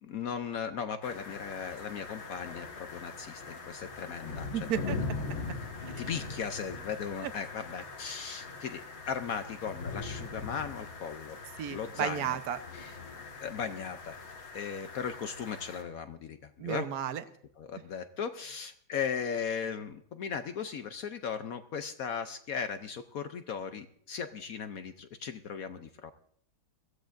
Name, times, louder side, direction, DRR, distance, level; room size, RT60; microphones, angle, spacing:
voice 1, 0.0-4.5 6.0-11.4 11.7-12.4 12.8-12.9 13.4-14.2 14.5-16.4 16.6-16.8 17.6-26.1, left 7 dB, 65° left, 9 dB, 0.9 m, -37 dB
sound 1, 1.0-15.8, left 3 dB, 85° left, 2.7 m, -41 dB
voice 2, 4.5-5.0 5.9-6.0 7.2-7.3 11.6-12.6 16.6-17.2, right 10 dB, 55° right, 10 dB, 1.2 m, -33 dB
22.0 x 15.5 x 2.6 m, 0.63 s
omnidirectional pair, 2.2 m